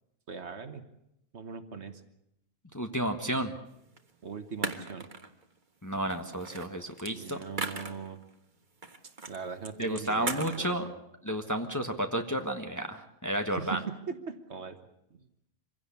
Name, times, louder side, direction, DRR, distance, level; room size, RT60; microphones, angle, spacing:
voice 1, 0.3-0.8 1.3-2.0 4.2-5.1 7.1-8.2 9.0-10.9 13.5-14.8 15.2-15.3, right 5 dB, 55° right, 9 dB, 1.6 m, -40 dB
voice 2, 2.7-3.5 5.8-7.4 9.8-10.8 11.2-13.8, right 1 dB, 15° left, 5 dB, 1.2 m, -32 dB
sound 1, 4.0-4.1 4.6-5.4 6.1-8.3 8.8-9.4 9.6-10.6, right 3 dB, 35° right, 1.5 m, -37 dB
25.5 x 16.5 x 8.4 m, 0.82 s
omnidirectional pair, 1.4 m